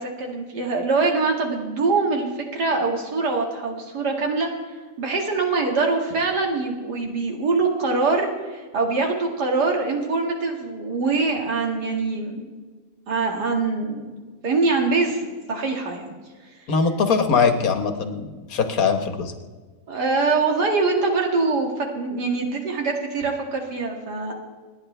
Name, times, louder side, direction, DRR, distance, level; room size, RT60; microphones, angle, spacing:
voice 1, 0.0-4.5 5.0-12.5 13.1-14.1 14.4-16.1 19.9-24.3, right 3 dB, 85° right, 2 dB, 2.5 m, -23 dB
voice 2, 16.7-19.3, left 5 dB, 60° left, 7 dB, 1.6 m, -21 dB
29.0 x 9.7 x 3.3 m, 1.4 s
omnidirectional pair, 1.7 m